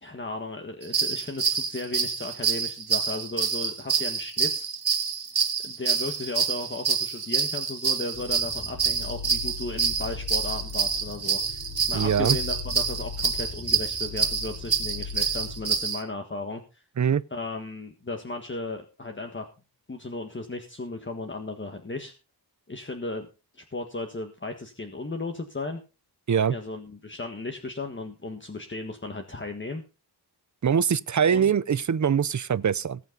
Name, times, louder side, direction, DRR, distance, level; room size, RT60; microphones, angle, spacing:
voice 1, 0.0-4.7 5.6-11.6 11.9-16.8 17.3-19.5 19.9-22.1 22.7-23.3 23.5-25.8 26.5-29.8 31.3-31.5, left 2 dB, 30° left, 1.6 m, -35 dB
sound 1, 0.8-16.0, right 6 dB, 65° right, 2.0 m, -27 dB
sound 2, 8.1-15.8, left 4 dB, 60° left, 4.6 m, -38 dB
voice 2, 11.9-12.4 17.0-17.2 26.3-26.6 30.6-33.0, right 7 dB, 45° right, 0.6 m, -23 dB
20.0 x 8.5 x 3.9 m
wide cardioid pair, 115°, 41 cm